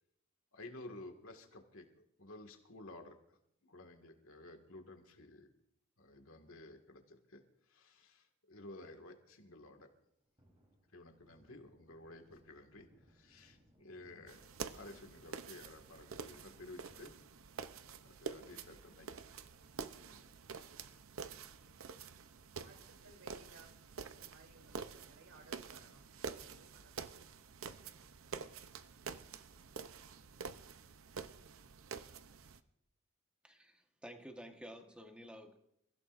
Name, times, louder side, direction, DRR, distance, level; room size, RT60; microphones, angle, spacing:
voice 1, 0.5-1.9 2.2-3.4 3.6-5.5 6.0-7.4 7.7-9.9 10.9-17.2 18.0-19.1 20.1-20.2, left 2 dB, 75° left, 4 dB, 2.0 m, -54 dB
Thunder, 10.1-20.7 21.1-21.2 21.5-23.0 23.3-23.5 23.8-24.6 25.0-25.1 25.5-25.6 27.9-28.5, equal, 25° right, 3.9 m, -72 dB
sound 1, 14.3-32.6, right 5 dB, 75° right, 0.7 m, -48 dB
voice 2, 22.6-23.8 24.1-27.1, right 2 dB, 90° right, 3 dB, 3.4 m, -62 dB
voice 3, 33.4-35.6, equal, 5° right, 4 dB, 1.3 m, -52 dB
29.0 x 15.5 x 2.6 m, 0.77 s
head